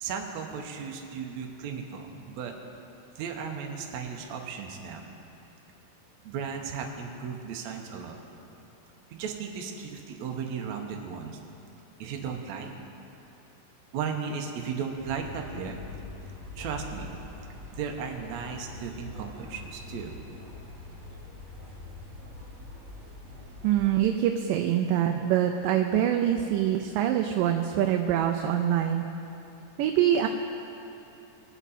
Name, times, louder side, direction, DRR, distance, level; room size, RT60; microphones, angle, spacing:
voice 1, 0.0-2.5 3.2-5.0 6.2-8.2 9.1-11.4 12.0-12.7 13.9-15.8 16.6-17.1 17.7-20.2, right 6 dB, 70° right, 2 dB, 2.0 m, -35 dB
sound 1, 14.9-23.9, left 2 dB, 45° right, 2.6 m, -44 dB
voice 2, 23.6-29.1 29.8-30.3, right 10 dB, 90° right, 4 dB, 2.2 m, -24 dB
20.0 x 8.1 x 4.2 m, 2.9 s
omnidirectional pair, 3.8 m